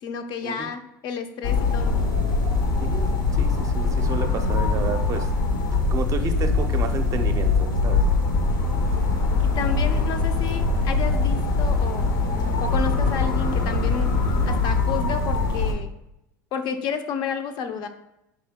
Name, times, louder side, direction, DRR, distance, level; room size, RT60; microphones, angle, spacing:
voice 1, 0.0-2.0 9.4-12.1 12.6-14.1 14.5-15.9 16.5-17.9, left 6 dB, 50° left, 8 dB, 0.5 m, -31 dB
sound 1, 1.4-15.7, left 3 dB, 80° left, 0.8 m, -22 dB
voice 2, 2.8-3.1 3.4-5.3 5.9-8.1 14.2-14.5, right 4 dB, 35° right, 7 dB, 0.5 m, -31 dB
4.2 x 2.8 x 3.5 m, 0.86 s
hypercardioid pair, 85°, 10 cm